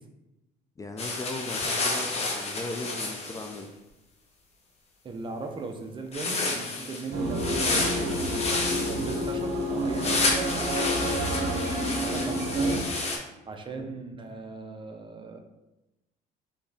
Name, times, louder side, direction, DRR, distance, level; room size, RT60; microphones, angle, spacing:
voice 1, 0.8-3.7 11.2-11.5 13.7-13.9, left 2 dB, 20° left, 4 dB, 0.4 m, -38 dB
sound 1, 1.0-3.6 6.1-13.2, left 3 dB, 40° left, 1.0 m, -30 dB
voice 2, 5.0-10.5 11.9-12.8 13.5-15.4, right 3 dB, 30° right, 4 dB, 0.6 m, -38 dB
sound 2, 7.1-12.8, right 1 dB, 70° right, 0.9 m, -29 dB
4.2 x 3.5 x 3.5 m, 0.98 s
cardioid pair, 110°, 17 cm